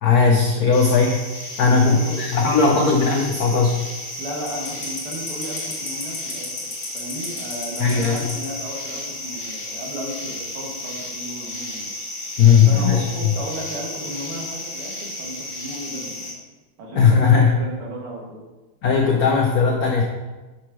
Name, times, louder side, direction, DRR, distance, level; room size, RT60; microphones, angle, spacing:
voice 1, 0.0-1.2 1.6-3.9 7.8-8.3 12.4-13.3 16.9-17.6 18.8-20.0, left 5 dB, 80° left, 1 dB, 0.8 m, -17 dB
sound 1, 0.7-16.3, left 2 dB, 35° left, 2.0 m, -33 dB
voice 2, 1.6-2.9 4.2-6.7 6.9-11.9 12.4-16.3 16.8-18.4, right 1 dB, 85° right, -2 dB, 2.3 m, -34 dB
5.9 x 4.4 x 4.8 m, 1.2 s
omnidirectional pair, 2.3 m